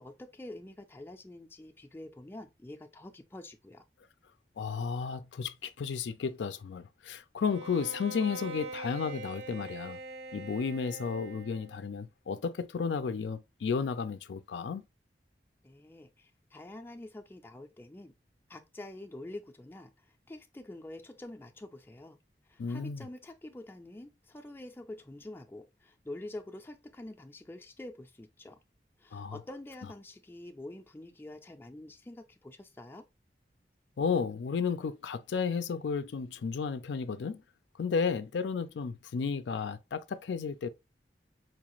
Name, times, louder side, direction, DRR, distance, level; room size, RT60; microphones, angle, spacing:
voice 1, 0.0-3.8 15.6-18.1 18.5-22.2 22.5-28.6 29.0-33.0, left 1 dB, 15° left, 0.4 m, -46 dB
voice 2, 4.6-10.0 10.3-14.8 22.6-23.1 29.1-29.4 34.0-37.4 37.8-40.7, left 5 dB, 85° left, 0.4 m, -33 dB
Bowed string instrument, 7.4-11.8, right 2 dB, 60° right, 0.7 m, -43 dB
4.5 x 2.4 x 2.9 m
head